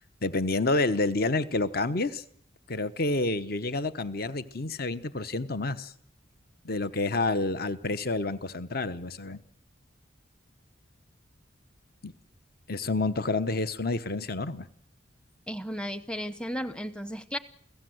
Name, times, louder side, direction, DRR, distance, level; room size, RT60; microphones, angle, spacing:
voice 1, 0.2-2.2 2.7-5.9 6.6-9.4 12.0-12.1 12.7-14.7, left 2 dB, 50° left, 13 dB, 1.0 m, -29 dB
voice 2, 15.5-17.4, equal, 5° left, 14 dB, 0.9 m, -34 dB
29.0 x 17.0 x 7.9 m, 0.66 s
head